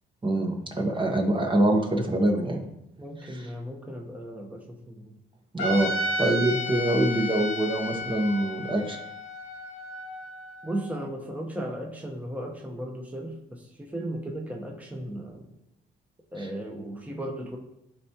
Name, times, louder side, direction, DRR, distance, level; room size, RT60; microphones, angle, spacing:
voice 1, 0.2-2.7 3.2-3.5 5.5-5.9 6.2-9.0 16.4-16.5, right 1 dB, 25° right, 2 dB, 1.1 m, -25 dB
voice 2, 3.0-5.1 10.6-15.5 16.3-17.6, right 1 dB, 5° right, 0 dB, 1.1 m, -36 dB
Trumpet, 5.6-10.8, left 1 dB, 85° left, 1.5 m, -32 dB
12.0 x 4.3 x 2.9 m, 0.82 s
cardioid pair, 90°, 20 cm